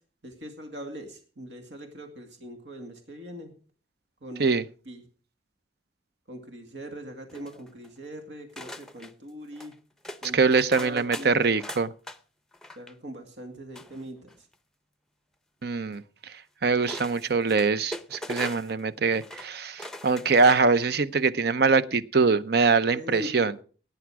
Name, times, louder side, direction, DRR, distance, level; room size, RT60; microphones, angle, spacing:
voice 1, 0.2-3.5 4.2-4.6 4.9-5.1 6.3-9.8 10.2-10.5 10.8-11.4 12.8-14.5 22.9-23.5, equal, 75° right, 5 dB, 2.2 m, -41 dB
sound 1, 7.3-8.0 8.6-9.1 9.5-9.7 10.0-12.2 12.5-12.9 13.7-14.5 15.9-16.0 16.8-18.8 19.1-19.5 19.8-20.8 21.2-21.3, left 1 dB, 5° left, 0.6 m, -40 dB
voice 2, 10.3-11.9 15.6-16.3 16.6-23.5, right 4 dB, 60° right, 15 dB, 0.7 m, -23 dB
17.5 x 9.3 x 4.8 m, 0.39 s
head